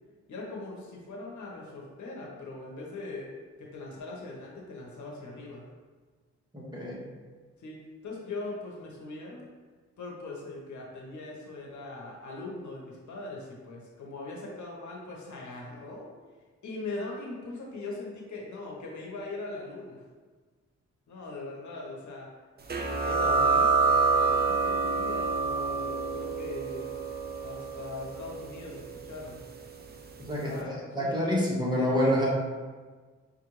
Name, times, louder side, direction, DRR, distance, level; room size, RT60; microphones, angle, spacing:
voice 1, 0.3-3.3 3.6-5.6 7.6-9.5 10.0-16.1 16.6-20.0 21.1-22.3 23.0-26.8 27.4-29.4 30.4-31.5, left 2 dB, 80° left, -3 dB, 1.0 m, -41 dB
voice 2, 6.5-7.0 30.3-32.3, equal, 15° right, -5 dB, 1.2 m, -27 dB
sound 1, 22.7-29.9, right 4 dB, 35° right, 0.5 m, -27 dB
5.3 x 2.5 x 3.0 m, 1.4 s
cardioid pair, 70°, 29 cm